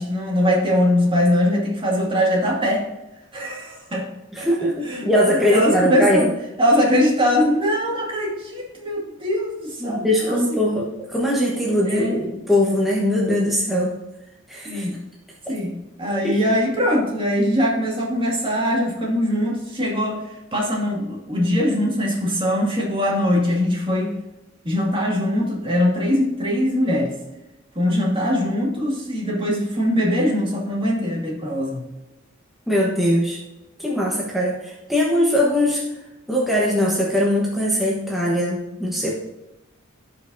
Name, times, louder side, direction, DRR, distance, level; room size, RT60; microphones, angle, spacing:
voice 1, 0.0-2.9 3.3-4.1 4.4-4.5 4.8-6.3 6.6-10.4 11.8-12.2 14.6-15.0 15.5-24.2 24.6-27.1 27.8-31.8, equal, 25° right, -2 dB, 2.2 m, -22 dB
voice 2, 4.3-6.3 9.8-13.9 14.5-14.8 16.2-16.4 32.7-33.4 33.8-35.8 36.3-39.1, left 1 dB, ahead, -5 dB, 1.1 m, -21 dB
16.0 x 5.4 x 2.7 m, 0.97 s
head